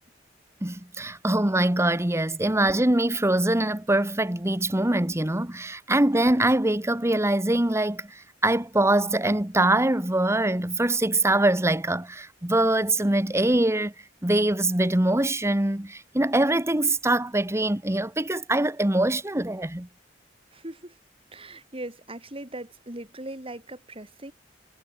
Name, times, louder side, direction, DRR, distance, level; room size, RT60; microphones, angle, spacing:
voice 1, 0.6-13.9 14.2-19.9, right 1 dB, 15° right, 1.3 m, -23 dB
voice 2, 20.5-21.0 21.3-24.3, right 1 dB, 30° right, 4.5 m, -39 dB
head